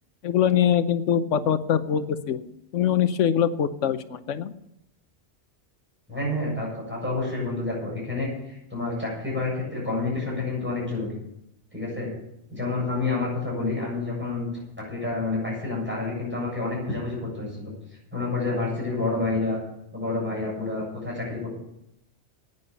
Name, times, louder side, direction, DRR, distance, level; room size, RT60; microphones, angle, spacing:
voice 1, 0.2-4.5, left 9 dB, 85° left, 12 dB, 1.1 m, -23 dB
voice 2, 6.1-11.1 11.7-12.1 12.5-14.5 14.8-17.7 18.1-19.6 19.9-21.5, left 3 dB, 10° right, -4 dB, 7.3 m, -29 dB
11.0 x 9.5 x 8.2 m, 0.82 s
omnidirectional pair, 1.2 m